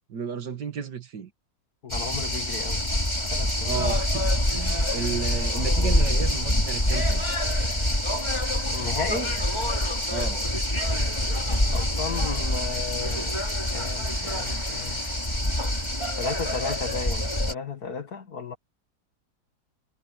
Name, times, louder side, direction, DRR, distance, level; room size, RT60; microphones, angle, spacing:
voice 1, 0.1-1.3 3.7-7.2 10.1-10.4, right 6 dB, 85° right, 2.3 m, -33 dB
voice 2, 1.8-2.8 3.3-3.9 8.7-9.4 11.7-15.0 16.2-18.6, left 5 dB, 65° left, 2.5 m, -34 dB
sound 1, 1.9-17.5, left 1 dB, 15° left, 3.8 m, -26 dB
omnidirectional pair, 1.8 m